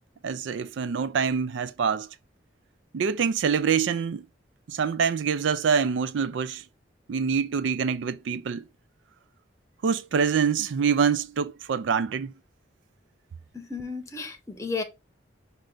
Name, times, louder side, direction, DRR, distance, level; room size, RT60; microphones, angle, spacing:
voice 1, 0.2-2.1 2.9-4.2 4.7-6.6 7.1-8.6 9.8-12.3, right 6 dB, 85° right, 0.4 m, -25 dB
voice 2, 13.5-14.8, left 4 dB, 15° left, 0.8 m, -33 dB
5.3 x 2.5 x 3.8 m
head